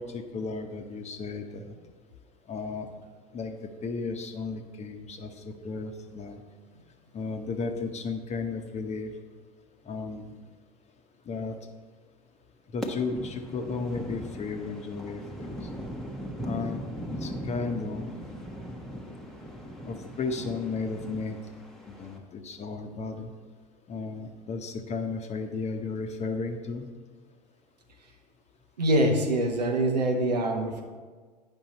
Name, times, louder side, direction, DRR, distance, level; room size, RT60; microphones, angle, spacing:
voice 1, 0.0-1.7 2.5-2.9 3.3-3.6 3.8-6.4 7.1-9.1 9.8-10.3 11.3-11.6 12.7-15.6 16.4-18.1 19.8-21.4 22.0-23.3 23.9-26.9, left 4 dB, 35° left, 5 dB, 0.9 m, -34 dB
sound 1, 12.8-22.2, equal, ahead, 1.0 m, -39 dB
voice 2, 28.8-30.8, right 1 dB, 85° right, 3 dB, 1.0 m, -24 dB
8.9 x 5.4 x 4.2 m, 1.5 s
figure-of-eight pair, 75°, 21 cm